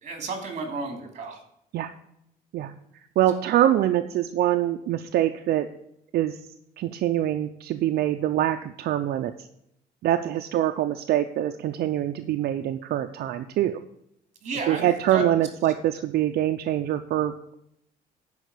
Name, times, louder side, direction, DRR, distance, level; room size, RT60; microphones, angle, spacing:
voice 1, 0.0-1.4 14.4-15.2, right 3 dB, 45° right, 4 dB, 3.0 m, -32 dB
voice 2, 2.5-5.7 6.1-6.4 6.8-9.5 10.0-13.8 14.7-17.6, right 12 dB, 75° right, 7 dB, 0.6 m, -24 dB
10.5 x 5.0 x 8.3 m, 0.76 s
cardioid pair, 145°, 16 cm